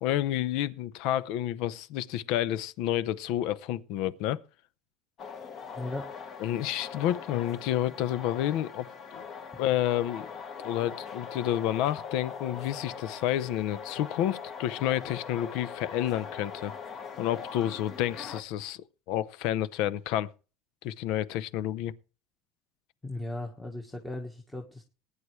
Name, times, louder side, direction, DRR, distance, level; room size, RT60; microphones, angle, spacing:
voice 1, 0.0-4.4 6.4-8.9 9.1-9.2 9.6-10.3 10.6-16.7 17.2-18.8 19.1-20.3 20.8-21.9, left 12 dB, 60° left, 0.7 m, -29 dB
sound 1, 5.2-18.4, left 6 dB, 30° left, 1.4 m, -41 dB
voice 2, 5.8-6.1 23.0-24.8, left 2 dB, 5° left, 1.4 m, -37 dB
20.0 x 9.8 x 3.2 m
cardioid pair, 160°, 0 cm